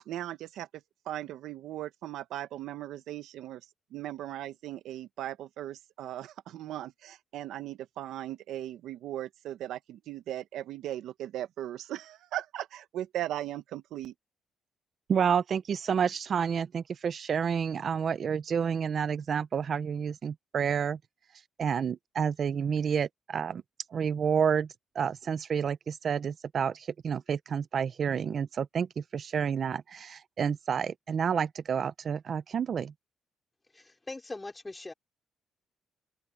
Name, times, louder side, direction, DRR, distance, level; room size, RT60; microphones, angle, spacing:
voice 1, 0.1-0.7 1.0-3.6 3.9-14.1, right 13 dB, 85° right, 1.4 m, -38 dB
voice 2, 15.1-21.0 21.6-23.6 23.9-24.7 24.9-32.9, right 7 dB, 50° right, 0.9 m, -29 dB
voice 3, 33.7-34.9, left 2 dB, 20° left, 3.9 m, -41 dB
open air
cardioid pair, 90°, 0 cm